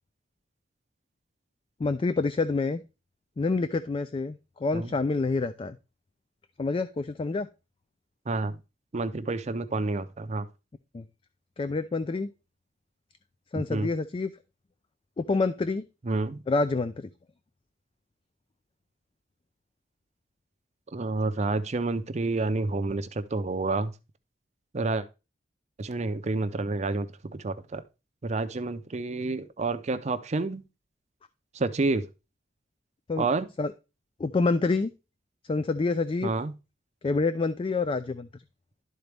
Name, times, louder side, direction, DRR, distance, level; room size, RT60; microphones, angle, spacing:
voice 1, 1.8-2.8 3.4-5.8 6.6-7.5 10.9-11.0 11.6-12.3 13.5-14.3 15.2-15.8 16.5-17.1 33.1-33.3 33.6-33.7 34.2-34.9 35.5-36.3 37.0-38.3, left 3 dB, 30° left, 0.3 m, -27 dB
voice 2, 8.3-8.6 8.9-10.5 13.5-13.9 16.0-16.4 20.9-23.9 24.7-25.1 25.8-27.8 28.2-30.6 31.5-32.1 33.2-33.5 36.2-36.6, right 3 dB, 40° right, 0.5 m, -29 dB
12.0 x 4.0 x 3.3 m
head